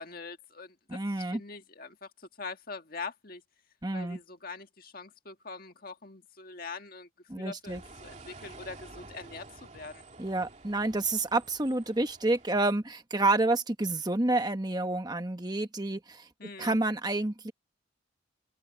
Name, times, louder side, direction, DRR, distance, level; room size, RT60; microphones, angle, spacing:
voice 1, 0.0-2.1 2.4-3.4 3.9-7.1 7.3-10.0 16.4-16.8, left 4 dB, 45° left, 1.7 m, -43 dB
voice 2, 0.9-1.4 3.8-4.2 7.3-7.8 10.2-16.3 16.6-17.5, right 2 dB, 20° right, 1.2 m, -29 dB
sound 1, 7.6-12.7, right 3 dB, 35° right, 2.8 m, -50 dB
head